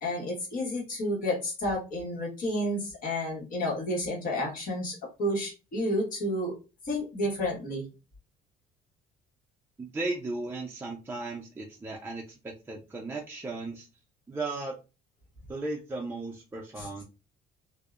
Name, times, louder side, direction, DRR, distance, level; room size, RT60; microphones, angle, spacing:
voice 1, 0.0-6.6 6.8-7.8 16.8-16.9, left 1 dB, 55° left, -1 dB, 1.2 m, -31 dB
voice 2, 9.8-13.9 14.3-14.8 15.5-17.0, right 2 dB, 15° right, -1 dB, 0.4 m, -36 dB
2.6 x 2.0 x 2.3 m, 0.29 s
cardioid pair, 110°, 17 cm